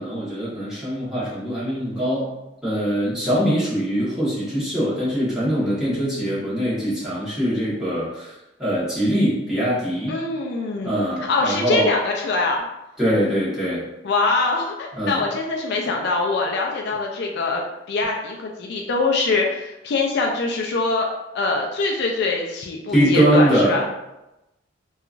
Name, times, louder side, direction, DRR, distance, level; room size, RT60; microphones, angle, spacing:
voice 1, 0.0-2.3 2.6-8.3 8.6-10.2 10.8-11.9 13.0-13.8 14.9-15.2 22.9-23.8, equal, 5° right, -10 dB, 1.1 m, -22 dB
voice 2, 10.1-11.0 11.3-12.6 14.0-17.6 17.9-21.1 21.3-23.8, left 3 dB, 60° left, 1 dB, 0.3 m, -23 dB
2.8 x 2.3 x 2.4 m, 0.95 s
head